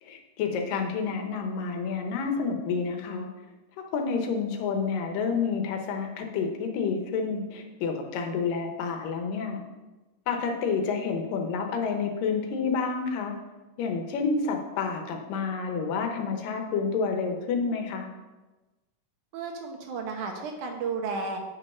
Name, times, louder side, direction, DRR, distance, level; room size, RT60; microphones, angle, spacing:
voice 1, 0.0-3.3 3.9-9.6 10.3-13.4 13.8-18.1, left 5 dB, 85° left, 4 dB, 2.7 m, -29 dB
voice 2, 19.3-21.4, right 4 dB, 70° right, 2 dB, 2.5 m, -33 dB
9.1 x 5.5 x 5.4 m, 1.1 s
omnidirectional pair, 3.8 m